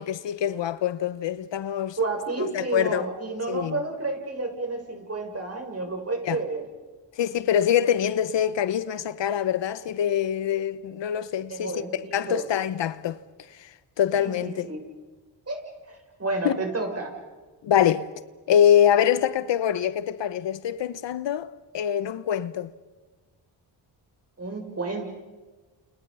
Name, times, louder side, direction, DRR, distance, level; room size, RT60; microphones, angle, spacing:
voice 1, 0.0-2.0 2.4-3.0 3.5-3.8 6.2-6.4 7.2-13.2 13.6-13.7 14.0-14.7 16.4-16.6 17.6-18.1 18.5-21.5 21.7-22.7, left 9 dB, 70° left, 1.1 m, -24 dB
voice 2, 2.0-6.7 11.5-12.5 14.2-14.8 15.5-17.2 24.4-25.1, right 3 dB, 35° right, 7.4 m, -31 dB
30.0 x 29.0 x 5.7 m
cardioid pair, 65°, 45 cm